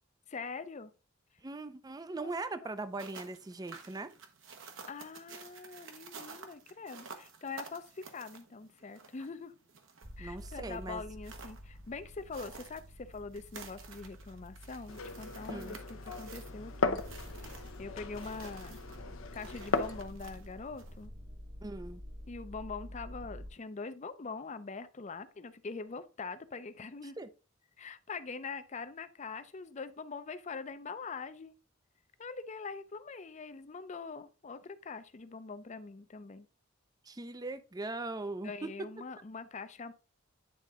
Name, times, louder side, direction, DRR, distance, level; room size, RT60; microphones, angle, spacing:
voice 1, 0.3-0.9 2.2-2.3 2.6-2.7 4.9-9.5 10.2-17.0 17.4-18.8 19.3-21.1 22.3-27.2 27.8-31.5 32.2-36.5 38.4-39.9, left 4 dB, 35° left, 0.5 m, -43 dB
voice 2, 1.4-4.1 10.2-11.0 15.5-15.8 21.6-22.0 27.0-27.3 37.0-38.9, right 2 dB, 20° right, 0.4 m, -40 dB
sound 1, 2.8-21.1, right 5 dB, 75° right, 1.1 m, -53 dB
sound 2, 10.0-23.5, equal, 50° right, 1.7 m, -49 dB
Glass, 14.9-20.0, left 4 dB, 75° left, 0.7 m, -37 dB
9.2 x 3.8 x 3.6 m
head